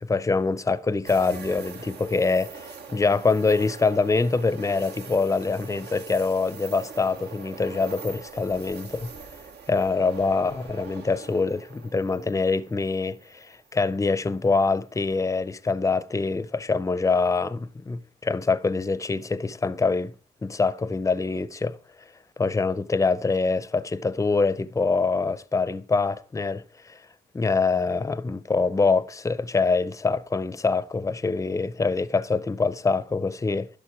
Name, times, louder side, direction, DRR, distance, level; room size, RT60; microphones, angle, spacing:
voice 1, 0.0-9.1 9.7-20.1 20.4-21.8 22.4-27.0 27.3-33.7, left 4 dB, 20° left, 0.5 m, -25 dB
sound 1, 1.1-14.1 14.5-14.6 17.0-17.4, right 5 dB, 75° right, 1.0 m, -43 dB
11.5 x 6.5 x 4.6 m
cardioid pair, 80°, 17 cm